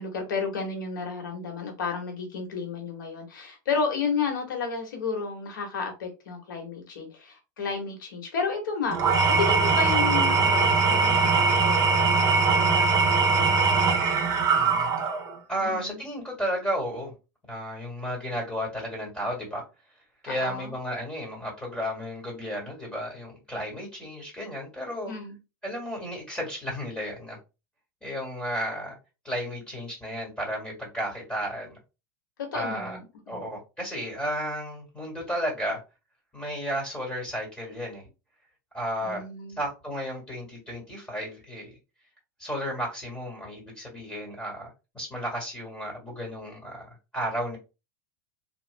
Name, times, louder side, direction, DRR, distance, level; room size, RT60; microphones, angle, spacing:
voice 1, 0.0-14.2 15.6-16.0 20.2-20.7 25.1-25.4 32.4-33.4 39.0-39.6, left 5 dB, 90° left, 1.4 m, -32 dB
Engine / Tools, 8.9-15.3, right 4 dB, 35° right, 0.9 m, -21 dB
voice 2, 14.5-14.9 15.5-17.1 17.5-19.6 20.2-25.1 25.6-27.4 28.0-29.0 29.2-31.8 32.5-33.0 33.3-35.8 36.3-38.0 38.7-39.2 39.6-41.8 42.4-47.6, equal, 10° left, 1.8 m, -33 dB
3.1 x 2.4 x 3.4 m
supercardioid pair, 120°, 10 cm